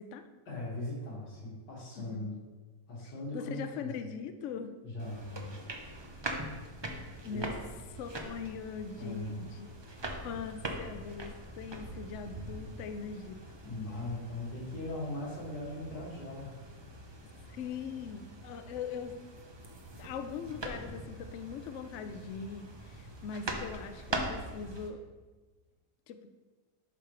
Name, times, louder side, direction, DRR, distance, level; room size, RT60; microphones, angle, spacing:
voice 1, 0.5-2.4 2.9-4.0 4.8-5.6 7.3-7.4 9.0-9.5 13.6-16.5, left 2 dB, 90° left, -5 dB, 2.8 m, -39 dB
voice 2, 2.0-2.3 3.3-4.7 7.2-7.5 8.0-9.7 10.2-13.4 17.5-19.2 20.0-25.0 26.1-26.4, left 6 dB, 65° left, 8 dB, 0.7 m, -41 dB
sound 1, 5.0-24.9, right 1 dB, 35° right, 0.4 m, -43 dB
11.0 x 5.3 x 3.3 m, 1.3 s
omnidirectional pair, 1.8 m